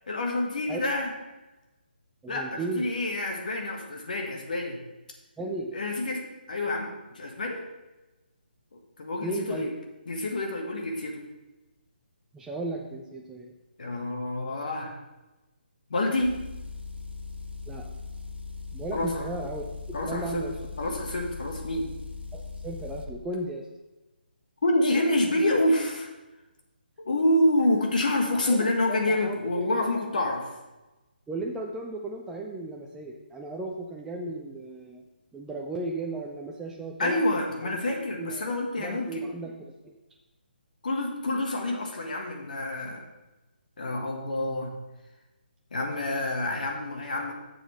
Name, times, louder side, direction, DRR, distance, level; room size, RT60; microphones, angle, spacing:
voice 1, 0.1-1.1 2.3-4.8 5.7-7.6 9.0-9.7 10.1-11.2 13.8-15.0 15.9-16.3 18.9-19.3 19.9-20.4 20.8-21.9 24.6-26.1 27.0-30.5 37.0-39.3 40.8-43.1 43.8-44.7 45.7-47.3, left 1 dB, 50° left, 1 dB, 1.5 m, -27 dB
voice 2, 2.2-2.9 5.4-5.7 9.2-9.7 12.3-13.5 17.7-17.9 18.7-20.5 22.3-23.7 28.4-29.9 31.3-35.0 35.3-37.2 37.6-37.8 38.2-39.9, right 2 dB, 5° right, -1 dB, 0.4 m, -35 dB
Motor vehicle (road) / Engine, 16.2-23.1, left 4 dB, 90° right, 1.2 m, -39 dB
9.9 x 7.0 x 3.3 m, 1.1 s
figure-of-eight pair, 145°, 6 cm